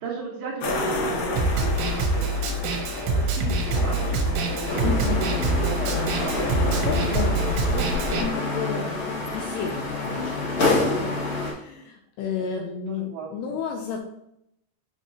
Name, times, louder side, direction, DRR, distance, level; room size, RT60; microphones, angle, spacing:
voice 1, 0.0-2.6 3.1-4.9 5.2-6.8 12.4-13.6, right 4 dB, 65° right, -7 dB, 2.4 m, -37 dB
sound 1, 0.6-8.3, left 2 dB, 70° left, 2.7 m, -30 dB
Snare drum, 1.4-8.2, right 2 dB, 80° right, 3.1 m, -25 dB
sound 2, 4.7-11.5, left 2 dB, 55° left, 1.4 m, -27 dB
voice 2, 4.8-5.3 6.8-14.1, left 6 dB, 85° left, 2 dB, 2.4 m, -33 dB
8.0 x 4.4 x 2.8 m, 0.77 s
omnidirectional pair, 5.5 m